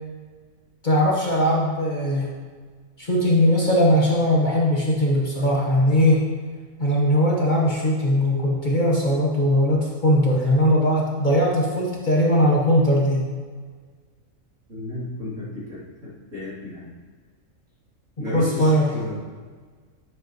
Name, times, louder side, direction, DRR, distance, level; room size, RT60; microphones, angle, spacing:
voice 1, 0.8-2.3 3.0-6.2 6.8-13.2 18.3-18.9, equal, 35° left, -3 dB, 1.1 m, -20 dB
voice 2, 14.7-16.9 18.2-19.1, left 1 dB, 65° right, -8 dB, 3.3 m, -33 dB
10.0 x 7.4 x 3.0 m, 1.5 s
omnidirectional pair, 1.4 m